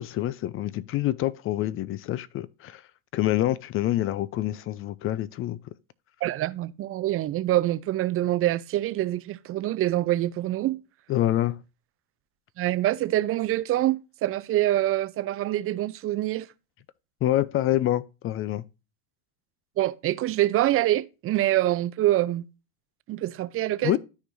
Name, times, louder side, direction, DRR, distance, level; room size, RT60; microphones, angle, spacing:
voice 1, 0.0-2.8 3.1-5.6 11.1-11.6 17.2-18.6 23.8-24.0, left 14 dB, 30° left, 0.4 m, -26 dB
voice 2, 6.2-10.8 12.6-16.5 19.8-22.4 23.1-24.0, right 14 dB, 30° right, 0.5 m, -25 dB
13.0 x 4.6 x 2.6 m
supercardioid pair, 105°, 43 cm